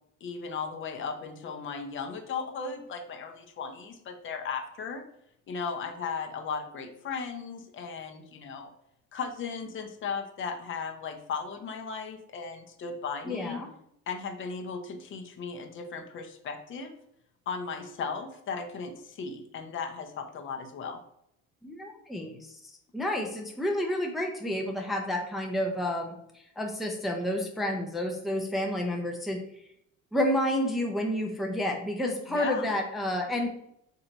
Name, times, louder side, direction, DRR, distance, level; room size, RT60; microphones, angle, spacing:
voice 1, 0.2-5.0 5.5-8.7 9.1-13.6 14.1-16.9 17.5-21.0 32.3-32.7, left 5 dB, 40° left, 5 dB, 0.7 m, -36 dB
voice 2, 13.3-13.7 21.6-22.4 22.9-26.1 26.6-29.4 30.1-33.5, left 1 dB, ahead, 1 dB, 0.5 m, -30 dB
4.5 x 2.8 x 3.8 m, 0.74 s
cardioid pair, 145°, 30 cm